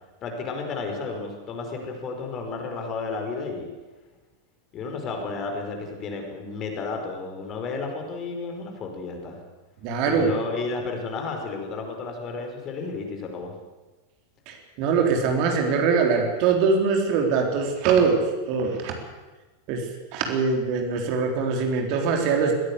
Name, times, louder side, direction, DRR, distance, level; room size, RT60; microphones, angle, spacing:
voice 1, 0.2-3.7 4.7-9.4 10.0-13.5, left 4 dB, 30° left, 3 dB, 4.9 m, -32 dB
voice 2, 9.8-10.3 14.5-18.9 19.7-22.5, right 5 dB, 45° right, 2 dB, 3.9 m, -23 dB
21.0 x 16.5 x 8.3 m, 1.2 s
figure-of-eight pair, 90°, 0 cm